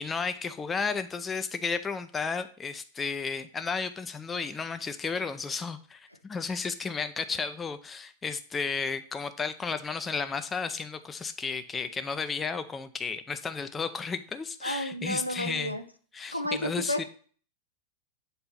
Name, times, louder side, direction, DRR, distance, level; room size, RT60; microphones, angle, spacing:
voice 1, 0.0-15.8 16.1-17.0, left 5 dB, 15° left, 10 dB, 0.5 m, -33 dB
voice 2, 14.6-15.8 16.3-17.0, left 1 dB, 90° left, 7 dB, 0.6 m, -31 dB
6.8 x 4.4 x 4.1 m, 0.43 s
figure-of-eight pair, 90°, 0 cm